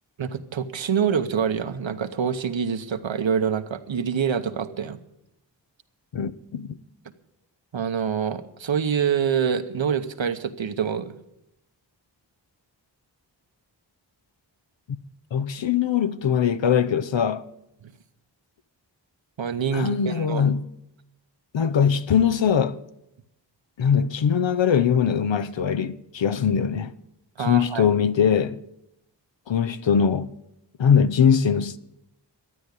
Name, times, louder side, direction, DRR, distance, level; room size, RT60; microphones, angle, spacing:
voice 1, 0.2-5.0 7.7-11.1 17.8-17.9 19.4-20.4 27.4-27.8, right 7 dB, 85° right, 1.0 m, -26 dB
voice 2, 6.1-6.7 14.9-15.0 15.3-17.4 19.7-20.6 21.5-22.8 23.8-26.9 27.4-28.6 29.5-30.3 30.8-31.8, left 7 dB, 80° left, 0.7 m, -21 dB
12.5 x 9.2 x 8.2 m
cardioid pair, 45°, 45 cm